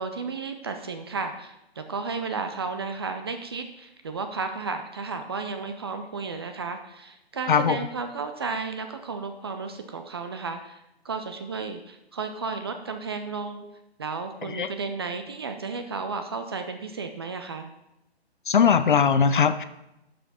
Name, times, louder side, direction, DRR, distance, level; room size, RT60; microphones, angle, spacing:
voice 1, 0.0-13.7 14.0-17.7, right 4 dB, 25° right, 7 dB, 0.5 m, -33 dB
voice 2, 18.5-19.6, left 6 dB, 50° left, 11 dB, 0.7 m, -20 dB
12.0 x 5.9 x 4.2 m, 0.88 s
figure-of-eight pair, 145°, 32 cm